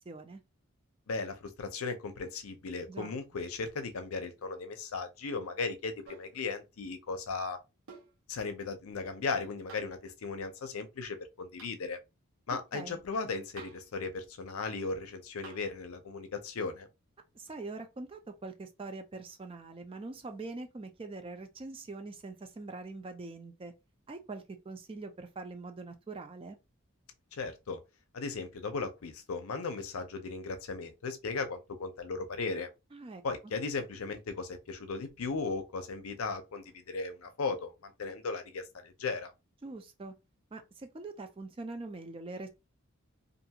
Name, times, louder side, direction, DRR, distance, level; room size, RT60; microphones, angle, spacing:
voice 1, 0.1-0.4 2.9-3.1 12.7-13.0 17.3-23.7 24.1-26.6 32.9-33.2 39.6-40.1 40.5-42.5, right 3 dB, 25° right, 0.3 m, -43 dB
voice 2, 1.1-7.6 8.3-12.0 12.5-16.9 27.3-27.8 28.1-32.7 33.2-39.3, left 4 dB, 80° left, 0.5 m, -37 dB
sound 1, 6.0-6.4 7.9-8.2 9.7-10.0 11.6-11.8 13.6-13.9 15.4-15.7 17.5-17.6, right 4 dB, 75° right, 0.7 m, -51 dB
2.5 x 2.3 x 2.8 m
head